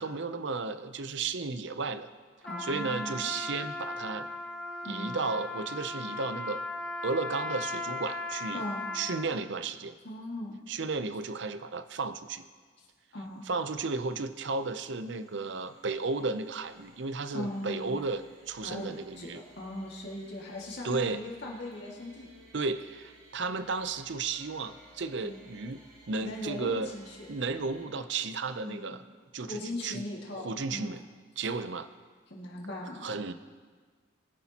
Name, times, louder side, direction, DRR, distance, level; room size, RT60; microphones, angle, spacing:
voice 1, 0.0-2.1 2.6-4.3 4.8-6.6 7.0-8.6 8.9-9.9 10.7-12.4 13.5-19.4 20.8-21.2 22.5-26.9 27.3-29.0 29.3-30.0 30.3-31.0 31.4-31.9 33.0-33.3, right 4 dB, 60° right, 11 dB, 0.6 m, -34 dB
voice 2, 2.4-3.3 4.8-5.1 8.5-8.9 10.0-10.6 13.1-13.5 17.3-18.0 18.6-22.3 25.2-25.4 26.2-27.3 28.7-28.9 29.4-31.0 32.3-33.1, left 1 dB, 55° left, -3 dB, 1.9 m, -39 dB
Trumpet, 2.4-9.4, left 2 dB, 5° left, 1.0 m, -37 dB
sound 1, 13.2-27.9, right 1 dB, 85° right, 3.0 m, -58 dB
20.5 x 10.0 x 2.9 m, 1.5 s
head